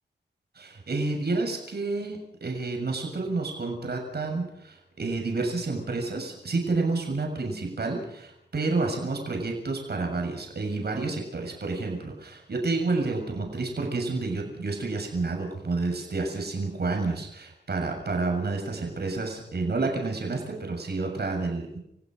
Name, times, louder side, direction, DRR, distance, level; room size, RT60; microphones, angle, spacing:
voice 1, 0.6-21.8, right 3 dB, 65° right, 2 dB, 7.1 m, -29 dB
29.5 x 16.0 x 6.5 m, 0.76 s
cardioid pair, 70°, 18 cm